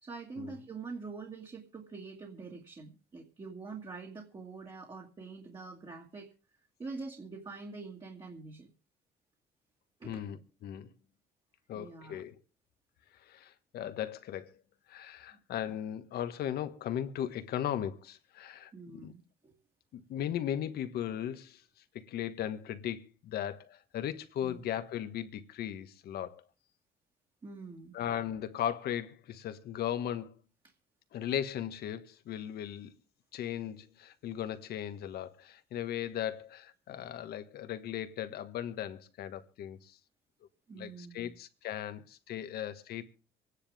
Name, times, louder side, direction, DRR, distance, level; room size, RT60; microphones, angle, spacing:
voice 1, 0.0-6.3 6.8-8.7 10.0-10.3 11.7-12.2 18.7-19.5 24.4-24.6 27.4-28.0 40.7-41.3, right 4 dB, 25° right, 2.1 m, -45 dB
voice 2, 10.0-10.9 11.7-12.4 13.1-14.6 14.9-19.1 19.9-21.6 21.9-26.4 27.9-30.3 31.1-32.9 33.3-40.0 40.8-43.2, left 10 dB, 70° left, 1.5 m, -37 dB
25.0 x 9.9 x 3.6 m
cardioid pair, 110°, 17 cm